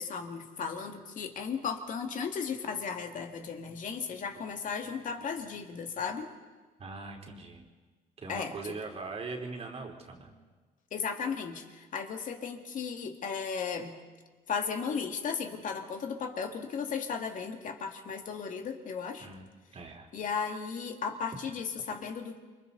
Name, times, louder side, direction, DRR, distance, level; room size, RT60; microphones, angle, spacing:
voice 1, 0.0-6.2 8.3-8.5 10.9-14.0 14.5-19.3 20.1-22.4, left 6 dB, 50° left, 4 dB, 2.4 m, -35 dB
voice 2, 6.8-7.7 8.2-10.3 19.2-20.1, right 3 dB, 35° right, 2 dB, 3.4 m, -41 dB
29.0 x 25.0 x 4.1 m, 1.3 s
cardioid pair, 110°, 17 cm